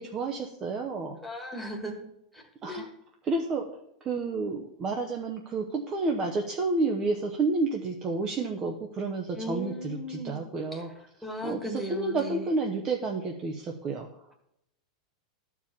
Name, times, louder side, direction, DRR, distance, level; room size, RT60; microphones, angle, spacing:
voice 1, 0.0-1.2 2.6-2.9 3.2-3.6 4.0-10.9 11.4-14.1, right 3 dB, 20° right, 2 dB, 0.8 m, -30 dB
voice 2, 1.2-2.0 2.3-2.4 2.7-2.8 9.3-10.4 10.7-10.8 11.2-12.4, equal, ahead, 0 dB, 1.5 m, -36 dB
12.5 x 4.8 x 7.2 m, 0.79 s
supercardioid pair, 170°, 4 cm